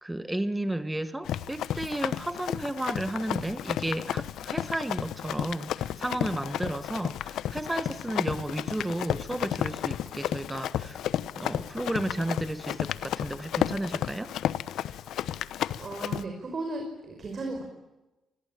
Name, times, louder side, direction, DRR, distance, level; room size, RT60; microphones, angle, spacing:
voice 1, 0.0-11.0 11.4-14.3, right 1 dB, 10° right, 1.5 m, -33 dB
Run, 1.2-16.2, left 11 dB, 75° left, 1.0 m, -32 dB
voice 2, 15.8-17.6, right 2 dB, 40° right, 5.7 m, -35 dB
27.0 x 21.0 x 9.0 m
cardioid pair, 90°, 0 cm